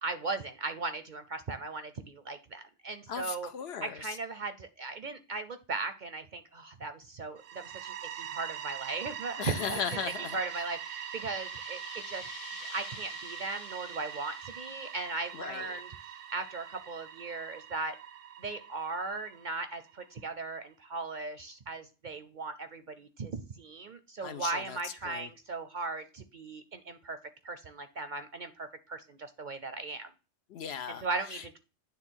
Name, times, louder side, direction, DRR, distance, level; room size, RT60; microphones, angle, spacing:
voice 1, 0.0-3.5 3.8-10.0 10.3-12.3 12.7-15.9 16.3-17.9 18.4-27.2 27.4-30.1 30.9-31.6, right 3 dB, 50° right, 0.7 m, -38 dB
voice 2, 3.1-4.2 9.4-10.4 15.3-15.8 24.2-25.3 30.5-31.4, left 7 dB, 65° left, 0.8 m, -38 dB
sound 1, 7.4-20.1, right 10 dB, 80° right, 1.0 m, -43 dB
sound 2, 8.6-16.9, left 7 dB, 90° left, 1.2 m, -52 dB
9.4 x 3.6 x 4.5 m
omnidirectional pair, 1.3 m